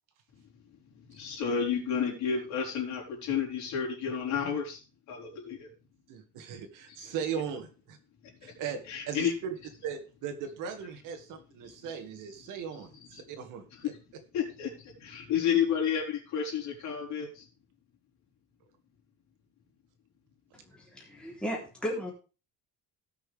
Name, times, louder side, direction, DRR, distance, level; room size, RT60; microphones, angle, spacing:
voice 1, 0.7-4.8 5.1-5.7 6.9-7.1 8.2-8.5 8.9-9.3 11.6-11.7 12.8-13.2 13.7-14.0 14.3-17.5, left 7 dB, 60° left, -2 dB, 4.6 m, -32 dB
voice 2, 6.1-8.0 8.4-8.8 9.1-9.5 9.8-13.9, right 7 dB, 70° right, 6 dB, 2.0 m, -38 dB
voice 3, 20.6-22.1, equal, 5° left, -3 dB, 3.5 m, -35 dB
18.0 x 6.2 x 3.5 m, 0.33 s
cardioid pair, 175°, 33 cm